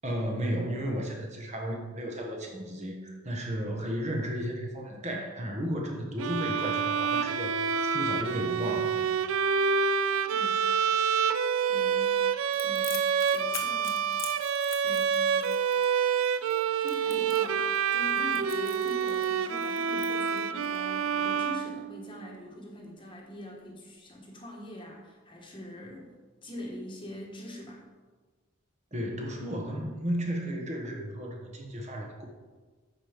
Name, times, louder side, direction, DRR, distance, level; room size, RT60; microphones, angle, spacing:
voice 1, 0.0-7.5 7.9-9.1 28.9-32.2, equal, 30° right, 0 dB, 1.2 m, -33 dB
Bowed string instrument, 6.2-22.3, right 7 dB, 70° right, 0.4 m, -27 dB
voice 2, 10.3-10.7 11.6-12.2 12.6-14.1 14.8-15.6 16.8-26.1 26.4-27.9, left 1 dB, 25° left, -1 dB, 1.3 m, -43 dB
Crackle, 12.5-20.8, left 8 dB, 65° left, 1.2 m, -44 dB
8.4 x 5.8 x 5.1 m, 1.4 s
head